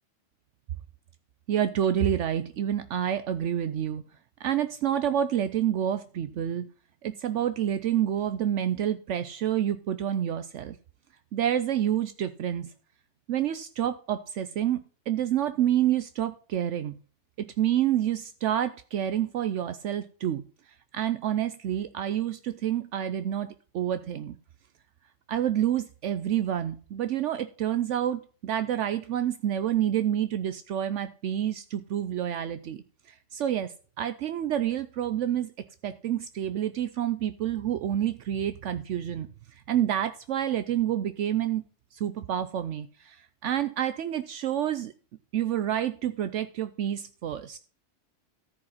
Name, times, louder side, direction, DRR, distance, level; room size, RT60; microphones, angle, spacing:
voice 1, 1.5-4.0 4.4-6.7 7.0-10.8 11.3-12.7 13.3-17.0 17.4-20.4 20.9-24.4 25.3-35.5 35.8-39.3 39.7-41.6 41.9-44.9 45.3-47.6, right 10 dB, 75° right, 10 dB, 0.9 m, -28 dB
14.0 x 5.2 x 5.6 m, 0.40 s
omnidirectional pair, 1.3 m